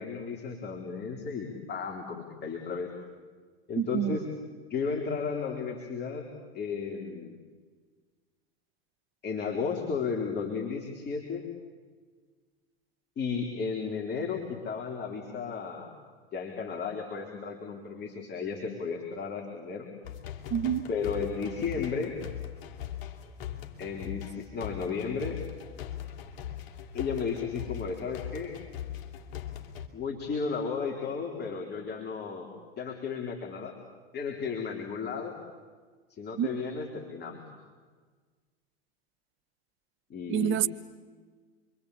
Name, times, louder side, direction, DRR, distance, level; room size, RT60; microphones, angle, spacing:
voice 1, 0.0-2.9 3.7-4.2 4.7-6.3 6.5-7.4 9.2-11.4 13.2-15.9 16.3-19.9 20.9-22.2 23.8-25.4 26.9-28.6 29.9-32.5 32.8-33.7 34.1-35.4 36.1-37.4 40.1-40.7, left 5 dB, 35° left, 2 dB, 3.9 m, -34 dB
voice 2, 3.8-4.2 20.5-20.8 36.4-36.5 40.3-40.7, right 10 dB, 40° right, 13 dB, 1.2 m, -27 dB
sound 1, 20.0-29.9, left 10 dB, 65° left, 3.0 m, -40 dB
28.5 x 23.5 x 8.6 m, 1.5 s
hypercardioid pair, 85°, 30 cm